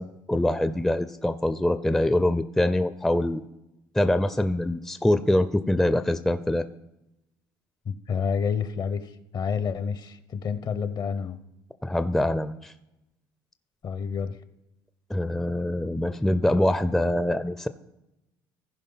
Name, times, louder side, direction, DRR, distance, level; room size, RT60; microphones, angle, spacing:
voice 1, 0.0-3.4 3.9-6.7 11.8-12.7 15.1-17.7, left 1 dB, 5° left, 11 dB, 0.5 m, -24 dB
voice 2, 7.9-11.4 13.8-14.4, left 6 dB, 45° left, 13 dB, 0.8 m, -29 dB
15.0 x 5.2 x 5.7 m, 0.91 s
supercardioid pair, 85°, 10 cm